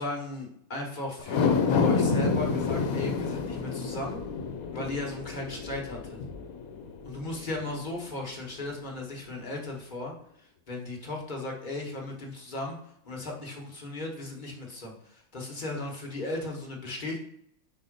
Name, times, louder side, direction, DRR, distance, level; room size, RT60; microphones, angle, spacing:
voice 1, 0.0-1.5 1.8-4.2 4.7-6.2 7.0-10.1 10.4-12.8 13.0-17.2, left 2 dB, 35° left, 0 dB, 1.3 m, -36 dB
sound 1, 1.2-7.7 8.1-8.2, left 4 dB, 80° left, 1.2 m, -28 dB
5.2 x 4.1 x 5.0 m, 0.72 s
omnidirectional pair, 1.5 m